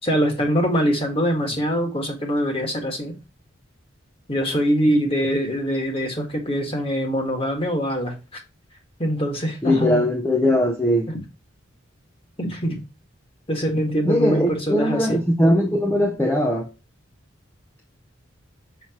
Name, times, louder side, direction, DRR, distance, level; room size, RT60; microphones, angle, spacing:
voice 1, 0.0-3.1 4.3-8.4 9.0-10.1 12.4-12.8 13.5-15.2, equal, 25° left, 1.7 m, -23 dB
voice 2, 9.6-11.1 14.1-16.7, left 1 dB, 10° left, 0.7 m, -20 dB
6.2 x 5.8 x 2.9 m
head